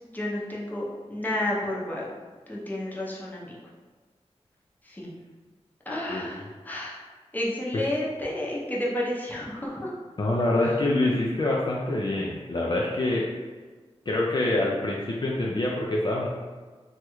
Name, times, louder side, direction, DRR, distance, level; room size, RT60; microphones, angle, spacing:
voice 1, 0.1-2.1 2.5-3.6 4.9-5.2 5.9-7.0 7.3-9.9, left 1 dB, 15° left, -5 dB, 0.7 m, -31 dB
voice 2, 6.1-6.5 7.7-7.8 10.2-13.3 14.1-16.3, left 2 dB, 45° left, -4 dB, 0.4 m, -26 dB
3.1 x 2.3 x 3.0 m, 1.4 s
wide cardioid pair, 65°, 11 cm